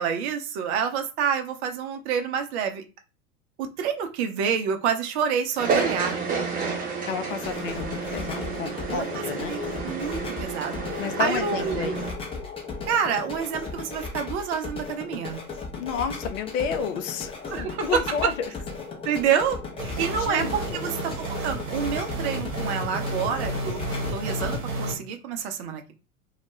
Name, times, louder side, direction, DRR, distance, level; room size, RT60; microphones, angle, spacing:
voice 1, 0.0-2.8 3.6-6.2 8.9-9.0 9.5-11.9 12.9-15.4 17.5-17.8 19.0-23.8 24.1-25.9, right 7 dB, 50° right, 6 dB, 0.6 m, -28 dB
sound 1, 5.6-12.1, right 5 dB, 20° right, 0.8 m, -30 dB
voice 2, 7.0-9.5 11.0-12.1 15.8-18.5 19.9-21.0, left 6 dB, 65° left, 9 dB, 0.5 m, -31 dB
sound 2, 7.3-24.6, left 4 dB, 15° left, 0.5 m, -36 dB
sound 3, 19.8-24.9, right 2 dB, 65° right, 1.1 m, -31 dB
2.3 x 2.1 x 3.1 m, 0.30 s
figure-of-eight pair, 80°, 43 cm